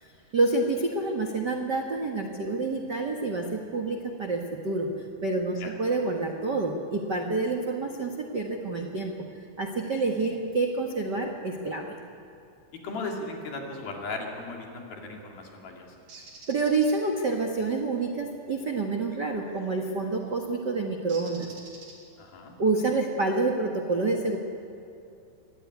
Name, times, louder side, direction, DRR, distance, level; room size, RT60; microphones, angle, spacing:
voice 1, 0.0-4.9 5.2-9.1 9.6-11.9 16.5-21.5 22.6-24.4, right 3 dB, 70° right, 2 dB, 1.0 m, -28 dB
voice 2, 12.8-15.9 22.2-22.5, left 3 dB, 65° left, 1 dB, 4.6 m, -36 dB
Bird, 16.1-17.0 19.6-19.8 21.1-22.3, right 3 dB, 50° right, 5.3 m, -47 dB
24.0 x 18.0 x 9.8 m, 2.6 s
omnidirectional pair, 4.7 m